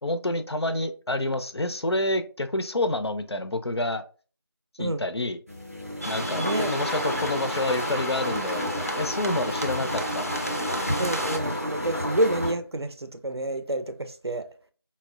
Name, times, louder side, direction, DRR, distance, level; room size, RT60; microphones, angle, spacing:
voice 1, 0.0-4.0 4.8-5.4 6.1-10.8, left 1 dB, 90° left, 0.5 m, -28 dB
sound 1, 5.5-12.5, equal, 35° right, 0.4 m, -31 dB
sound 2, 6.0-11.4, right 1 dB, 35° left, 0.4 m, -34 dB
voice 2, 6.4-6.7 11.0-14.5, right 1 dB, 85° right, 0.5 m, -28 dB
4.1 x 2.0 x 2.4 m
figure-of-eight pair, 175°, 13 cm